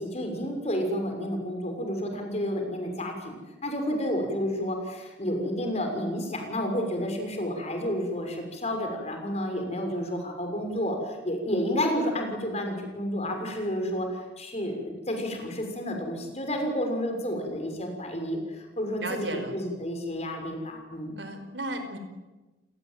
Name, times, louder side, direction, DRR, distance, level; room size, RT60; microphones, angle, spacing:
voice 1, 0.0-21.2, equal, 40° left, 4 dB, 6.5 m, -30 dB
voice 2, 19.0-19.6 21.2-22.0, right 1 dB, 90° right, 8 dB, 4.9 m, -34 dB
29.5 x 19.0 x 9.4 m, 1.1 s
head